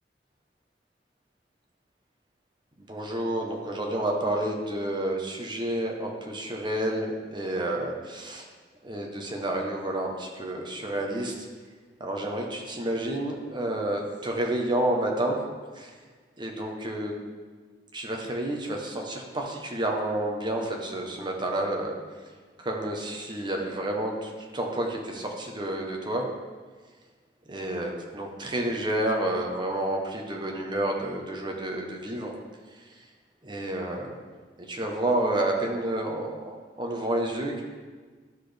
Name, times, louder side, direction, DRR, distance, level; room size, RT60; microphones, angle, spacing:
voice 1, 2.9-8.5 8.8-11.5 12.0-15.4 15.8-15.9 16.4-17.2 17.9-22.0 22.6-26.3 27.5-32.3 33.4-34.2 34.7-37.6, right 1 dB, 25° right, 1 dB, 1.0 m, -30 dB
11.5 x 4.2 x 3.4 m, 1.5 s
head